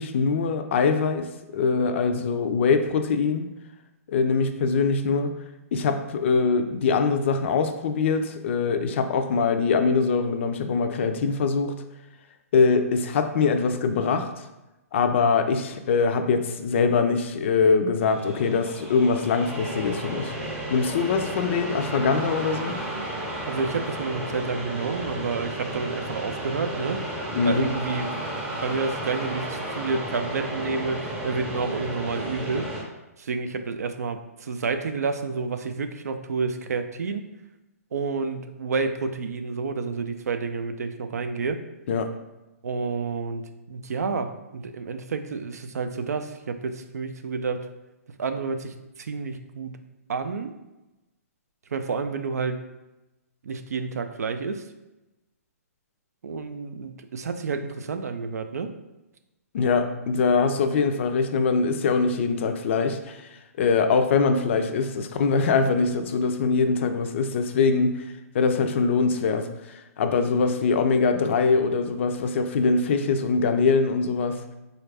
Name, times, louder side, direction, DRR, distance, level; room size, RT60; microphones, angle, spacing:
voice 1, 0.0-3.5 4.1-5.4 5.7-11.8 12.5-14.4 14.9-20.3 20.7-22.8 27.3-27.7 41.9-42.1 59.5-63.2 63.6-68.0 68.3-69.5 70.0-74.4, left 4 dB, 50° left, 7 dB, 0.4 m, -23 dB
sound 1, 18.0-32.8, right 1 dB, 5° right, 0.6 m, -33 dB
voice 2, 23.5-27.0 27.5-28.2 28.6-32.7 33.2-37.3 37.9-41.6 42.6-47.6 48.2-48.7 49.0-49.7 50.1-50.5 51.7-52.6 53.4-54.6 56.2-58.7, right 4 dB, 80° right, 8 dB, 0.4 m, -29 dB
4.1 x 2.4 x 3.3 m, 1.0 s
hypercardioid pair, 150°, 8 cm